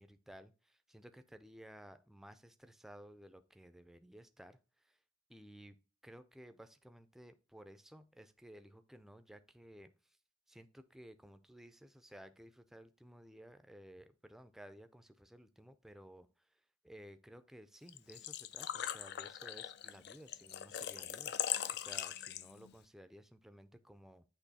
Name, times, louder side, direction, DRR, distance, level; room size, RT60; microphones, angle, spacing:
voice 1, 0.0-4.6 4.9-5.0 5.3-5.8 6.0-9.9 10.5-16.3 16.8-21.3 21.7-24.2, equal, ahead, 10 dB, 0.4 m, -56 dB
Engine / Trickle dribble / Fill (with liquid), 17.9-22.7, left 11 dB, 60° left, 0.4 m, -40 dB
8.3 x 3.1 x 4.1 m, 0.33 s
head